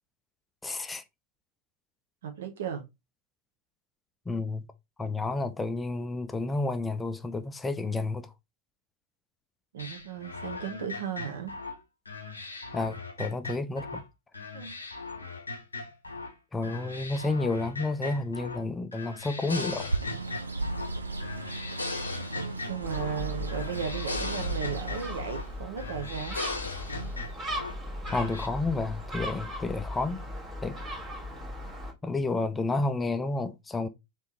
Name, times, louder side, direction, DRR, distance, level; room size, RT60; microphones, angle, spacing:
voice 1, 0.6-1.0 4.3-4.6 5.0-8.3 12.7-14.0 16.5-19.9 28.1-30.2 30.6-30.8 32.0-33.9, left 3 dB, 10° left, 0.4 m, -30 dB
voice 2, 2.2-2.8 9.7-11.5 14.5-14.7 22.7-26.4, right 7 dB, 60° right, 0.9 m, -35 dB
sound 1, 9.8-14.1 14.3-16.3 16.6-18.6 18.9-20.9 21.2-23.2 23.5-25.5 25.8-27.7 28.0-28.5, left 3 dB, 80° left, 0.6 m, -38 dB
Bird, 19.7-25.6, right 2 dB, 80° right, 0.5 m, -36 dB
Gull seagull, 22.8-31.9, left 1 dB, 25° right, 1.3 m, -38 dB
3.4 x 3.4 x 2.8 m
figure-of-eight pair, 90°, 0 cm